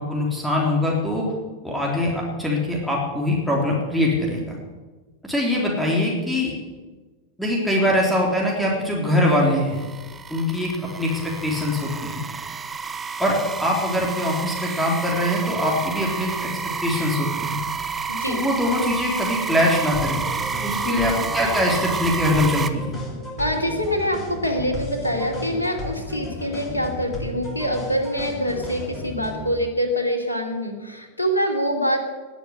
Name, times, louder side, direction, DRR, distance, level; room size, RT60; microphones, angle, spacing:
voice 1, 0.0-1.3 1.6-4.5 5.2-6.5 7.4-9.8 10.3-10.7 11.0-12.2 13.2-16.5 16.8-17.6 18.3-20.2 20.6-22.9, left 1 dB, ahead, -3 dB, 3.6 m, -23 dB
sound 1, 9.3-22.7, right 5 dB, 15° right, 1.1 m, -30 dB
voice 2, 18.1-18.4 20.8-21.3 23.4-32.0, equal, 80° left, 3 dB, 2.6 m, -25 dB
sound 2, 19.9-29.5, left 1 dB, 20° left, 5.8 m, -34 dB
20.0 x 7.0 x 9.7 m, 1.3 s
figure-of-eight pair, 90°, 0 cm